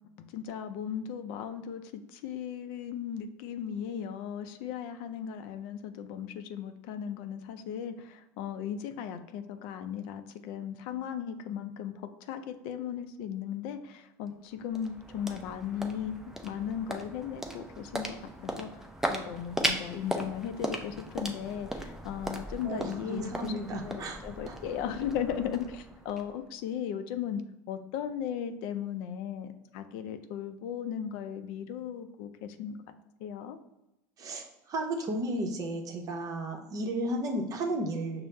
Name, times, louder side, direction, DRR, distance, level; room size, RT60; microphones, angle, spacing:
voice 1, 0.3-11.9 12.2-16.2 16.4-18.7 19.1-23.5 23.8-27.4 27.7-32.8 33.2-33.6, left 8 dB, 65° left, 9 dB, 0.4 m, -37 dB
sound 1, 14.3-26.7, right 1 dB, 5° right, 0.5 m, -38 dB
voice 2, 22.6-24.2 24.5-24.6 34.2-38.3, right 1 dB, 40° right, 3 dB, 0.7 m, -34 dB
5.4 x 2.0 x 3.1 m, 0.93 s
supercardioid pair, 100°, 9 cm